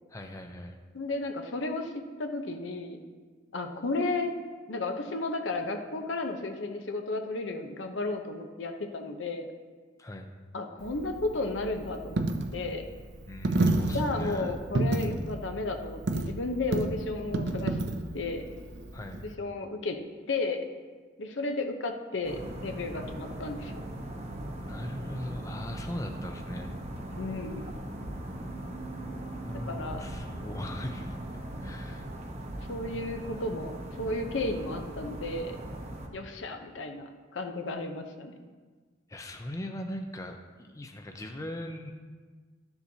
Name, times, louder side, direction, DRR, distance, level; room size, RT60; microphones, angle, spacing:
voice 1, 0.1-0.8 10.0-10.3 13.3-14.6 18.9-19.2 24.7-26.7 29.4-31.2 31.6-32.1 36.3-36.4 39.1-41.9, left 1 dB, 15° left, 4 dB, 0.5 m, -39 dB
voice 2, 0.9-1.9 2.2-3.0 3.5-4.3 4.7-9.5 10.5-12.2 12.5-12.9 13.9-18.4 19.2-20.0 20.3-20.6 21.2-23.7 27.2-27.7 29.6-30.1 32.7-33.7 34.0-35.6 36.1-38.4, left 2 dB, 75° left, 5 dB, 0.8 m, -33 dB
Coin (dropping), 10.8-19.3, right 2 dB, 60° right, 0.6 m, -31 dB
sound 1, 22.2-36.1, right 1 dB, 35° right, 0.9 m, -39 dB
12.5 x 7.0 x 2.8 m, 1.4 s
head